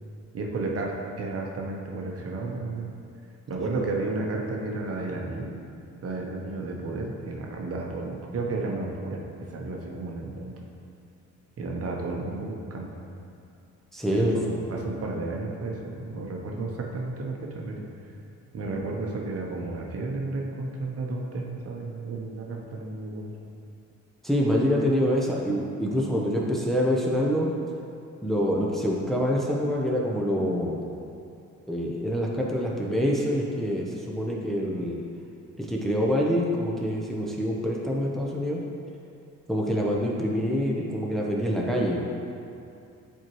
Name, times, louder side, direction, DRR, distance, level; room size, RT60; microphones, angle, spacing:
voice 1, 0.3-2.9 3.5-5.6 6.0-9.2 9.5-10.5 11.6-12.9 14.1-17.9 18.5-23.3, right 2 dB, 50° right, 0 dB, 0.9 m, -32 dB
voice 2, 13.9-14.4 24.2-27.5 28.2-30.8 31.7-35.0 35.6-38.6 39.5-42.1, equal, ahead, -3 dB, 0.7 m, -26 dB
7.4 x 4.6 x 3.0 m, 2.6 s
cardioid pair, 90°, 30 cm